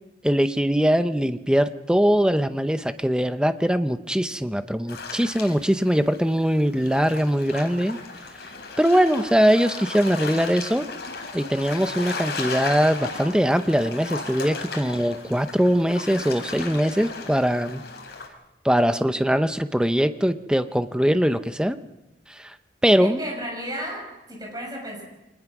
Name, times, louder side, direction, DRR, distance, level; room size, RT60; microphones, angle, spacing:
voice 1, 0.2-8.0 8.8-10.9 11.3-17.8 18.6-21.8 22.4-22.5 22.8-23.2, equal, 5° right, 10 dB, 0.7 m, -21 dB
sound 1, 4.9-18.3, left 4 dB, 70° left, 4.2 m, -36 dB
voice 2, 23.0-25.0, equal, 20° right, 1 dB, 6.2 m, -33 dB
25.0 x 20.0 x 6.1 m, 0.99 s
head